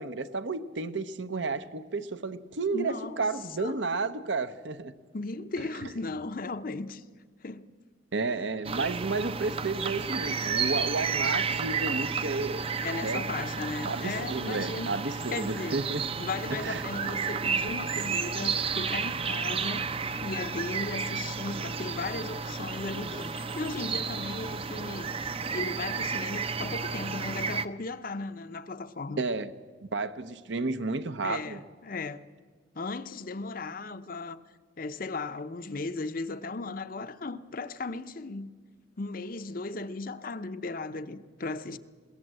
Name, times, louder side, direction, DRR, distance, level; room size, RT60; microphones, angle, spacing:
voice 1, 0.0-4.9 8.1-12.6 13.0-13.2 13.8-16.1 16.6-16.8 29.2-29.5 29.9-31.6, right 3 dB, 70° right, 0.9 m, -32 dB
voice 2, 2.7-3.2 3.6-3.7 5.1-7.0 7.4-7.7 12.8-14.9 15.3-15.8 16.2-19.9 20.2-25.1 25.5-29.2 31.2-32.2 32.7-34.4 34.8-38.5 39.0-41.8, left 3 dB, 45° left, 0.7 m, -36 dB
sound 1, 8.6-27.6, right 5 dB, 30° right, 0.6 m, -32 dB
21.0 x 17.5 x 7.7 m
head